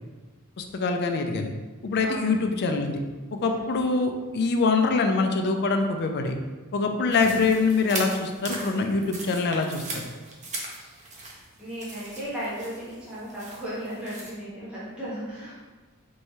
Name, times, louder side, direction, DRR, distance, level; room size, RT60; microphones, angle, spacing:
voice 1, 0.6-1.5 1.8-3.0 3.4-6.4 6.7-10.0, left 4 dB, 50° left, 5 dB, 0.4 m, -24 dB
sound 1, 7.1-14.3, right 2 dB, 30° right, 0.7 m, -39 dB
voice 2, 11.6-15.6, equal, 5° right, -10 dB, 0.9 m, -36 dB
4.5 x 3.1 x 2.7 m, 1.3 s
head